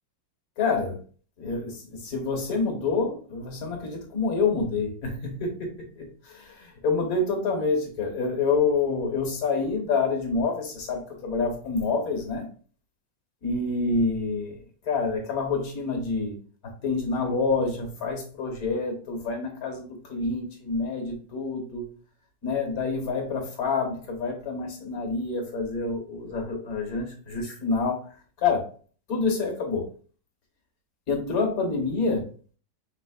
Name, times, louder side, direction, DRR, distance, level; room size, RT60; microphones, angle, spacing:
voice 1, 0.6-0.9 1.4-5.7 6.0-12.5 13.4-14.6 14.9-16.3 16.6-21.8 22.4-28.0 28.4-28.6 29.1-29.8 31.1-32.2, left 4 dB, 50° left, 2 dB, 1.6 m, -27 dB
5.5 x 3.6 x 2.4 m, 0.41 s
omnidirectional pair, 2.0 m